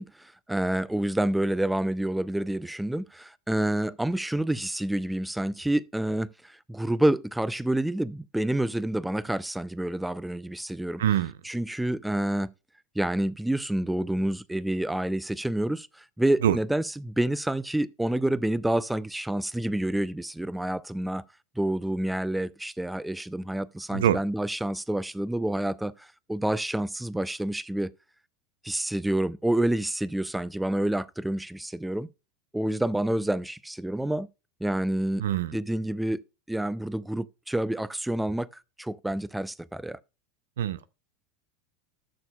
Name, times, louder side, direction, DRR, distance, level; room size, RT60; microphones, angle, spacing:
voice 1, 0.0-11.0 11.4-12.5 13.0-21.2 21.6-27.9 28.6-32.1 32.5-34.3 34.6-35.2 35.5-36.2 36.5-40.0, right 1 dB, 5° right, 0.3 m, -28 dB
voice 2, 11.0-11.3 16.4-16.6 23.9-24.2 35.2-35.5 40.6-40.9, right 10 dB, 80° right, 0.5 m, -24 dB
12.5 x 6.9 x 2.3 m
hypercardioid pair, 90°, 0 cm